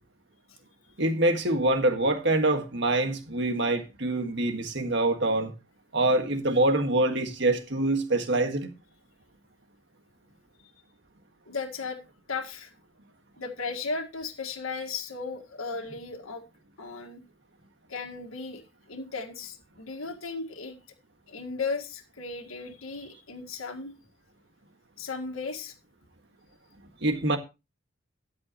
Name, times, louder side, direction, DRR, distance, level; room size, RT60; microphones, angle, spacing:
voice 1, 1.0-5.5 5.9-8.7 27.0-27.4, right 2 dB, 55° right, 1.8 m, -25 dB
voice 2, 11.5-12.0 12.3-12.7 13.4-16.4 16.8-17.2 17.9-18.6 18.9-20.8 21.3-23.9 25.0-25.8, left 4 dB, 85° left, 1.9 m, -35 dB
13.5 x 9.9 x 3.0 m
head